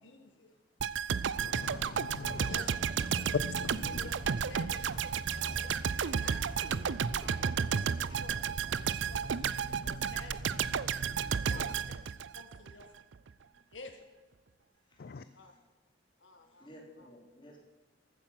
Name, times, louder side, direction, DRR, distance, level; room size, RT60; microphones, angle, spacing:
voice 1, 0.0-0.6 2.4-3.4 3.9-4.8 5.3-7.5 8.1-8.5 9.1-10.6 11.4-11.9 12.3-12.9 13.7-14.0 15.3-15.5 16.2-16.7 17.0-17.1, left 3 dB, 80° left, 6 dB, 1.4 m, -52 dB
sound 1, 0.8-12.8 13.1-13.3, right 7 dB, 80° right, 0.5 m, -33 dB
voice 2, 1.4-2.6 3.3-4.1 11.5-11.7 15.0-15.2, left 4 dB, 55° left, 14 dB, 0.4 m, -39 dB
sound 2, 2.2-12.0, right 2 dB, 40° right, 0.8 m, -44 dB
voice 3, 14.9-15.5 16.6-17.7, equal, 25° left, -1 dB, 3.3 m, -55 dB
14.5 x 9.1 x 5.7 m, 1.3 s
head